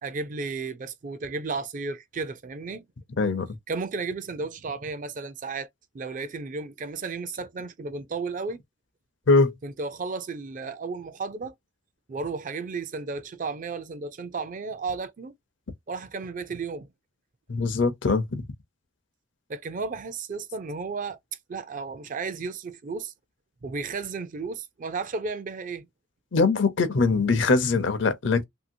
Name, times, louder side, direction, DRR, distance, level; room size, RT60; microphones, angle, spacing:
voice 1, 0.0-2.8 3.7-5.7 5.9-8.6 9.6-11.5 12.1-15.3 15.9-16.9 19.5-21.2 21.5-23.1 23.6-25.9, right 4 dB, 40° right, 0.4 m, -33 dB
voice 2, 17.5-18.4 26.3-28.4, left 3 dB, 65° left, 0.6 m, -22 dB
2.9 x 2.7 x 2.5 m
head